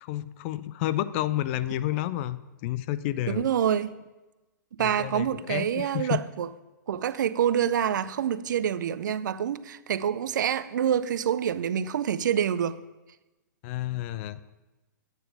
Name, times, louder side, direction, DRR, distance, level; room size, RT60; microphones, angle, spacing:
voice 1, 0.0-3.5 4.8-6.2 13.6-14.4, left 14 dB, 40° left, 0.4 m, -30 dB
voice 2, 3.3-3.9 4.7-6.5 6.9-12.8, right 9 dB, 70° right, 0.5 m, -27 dB
10.0 x 9.1 x 3.4 m
hypercardioid pair, 130°, 10 cm